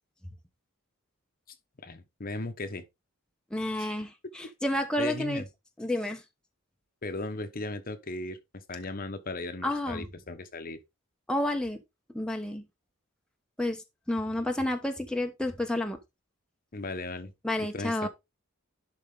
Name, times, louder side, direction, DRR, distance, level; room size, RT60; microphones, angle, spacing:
voice 1, 1.8-2.8 3.8-3.9 5.0-5.5 7.0-8.4 8.7-10.8 16.7-17.3 17.6-18.1, left 2 dB, 45° left, 1.0 m, -36 dB
voice 2, 3.5-5.4 5.8-6.2 9.6-10.1 11.3-11.8 12.1-12.6 13.6-13.8 14.1-16.0 17.4-18.1, left 1 dB, 5° left, 0.9 m, -30 dB
11.0 x 4.4 x 3.7 m
head